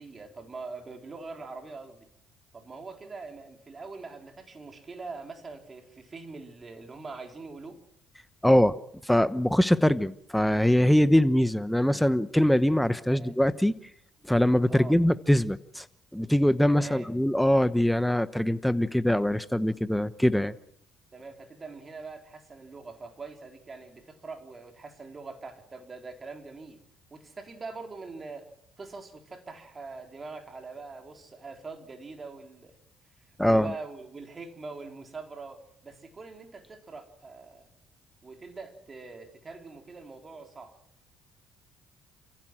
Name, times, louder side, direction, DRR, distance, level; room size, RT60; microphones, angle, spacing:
voice 1, 0.0-2.1 2.5-7.8 13.1-13.3 14.7-15.0 16.7-17.1 21.1-26.8 27.1-28.5 28.8-32.8 33.4-37.7 38.2-40.8, right 4 dB, 30° right, 4.1 m, -43 dB
voice 2, 8.4-8.8 9.0-13.7 14.3-15.8 16.1-20.5 33.4-33.7, equal, 5° left, 1.0 m, -23 dB
29.0 x 15.5 x 7.7 m
cardioid pair, 85°, 0 cm